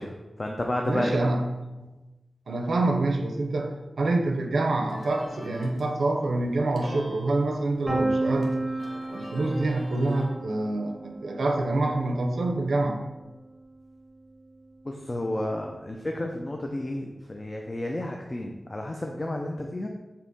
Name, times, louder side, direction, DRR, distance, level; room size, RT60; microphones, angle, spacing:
voice 1, 0.0-1.3 14.8-19.9, left 1 dB, 30° left, 2 dB, 0.3 m, -31 dB
voice 2, 0.9-1.4 1.8-1.9 2.5-8.6 9.1-13.0, right 2 dB, 85° right, 3 dB, 0.4 m, -26 dB
sound 1, 4.9-10.3, left 1 dB, 50° left, 0.7 m, -45 dB
Piano, 7.9-13.6, right 2 dB, 5° right, 1.0 m, -33 dB
3.5 x 2.8 x 3.9 m, 1.1 s
wide cardioid pair, 90°, 0 cm